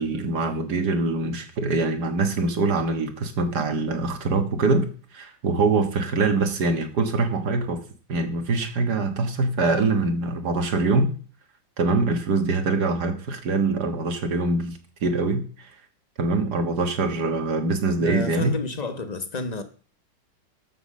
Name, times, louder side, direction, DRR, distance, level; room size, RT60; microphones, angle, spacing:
voice 1, 0.0-4.9 5.1-7.8 8.1-11.1 11.8-15.7 16.2-18.6, right 3 dB, 60° right, 7 dB, 2.0 m, -24 dB
voice 2, 18.0-19.6, left 3 dB, 25° left, 8 dB, 1.1 m, -30 dB
13.0 x 6.2 x 6.3 m, 0.41 s
omnidirectional pair, 2.0 m